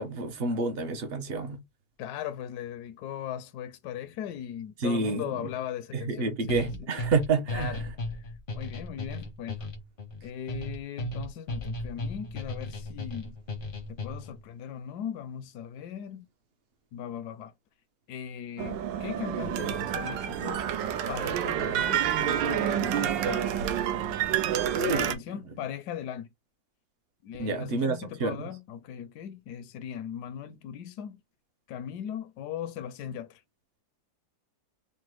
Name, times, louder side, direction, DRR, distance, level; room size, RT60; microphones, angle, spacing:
voice 1, 0.0-1.6 4.8-5.4 5.9-7.8 24.7-25.1 27.4-28.5, right 3 dB, 60° right, 0.6 m, -29 dB
voice 2, 2.0-6.6 7.5-7.8 8.5-9.6 10.2-13.4 13.9-16.3 16.9-17.5 18.1-20.7 21.1-23.8 24.3-24.4 24.9-26.3 27.2-31.2 31.7-33.4, left 9 dB, 70° left, 1.0 m, -38 dB
sound 1, 6.5-14.4, left 1 dB, 50° left, 0.6 m, -36 dB
sound 2, 18.6-25.1, right 10 dB, 85° right, 1.3 m, -28 dB
4.0 x 2.1 x 4.5 m
omnidirectional pair, 2.0 m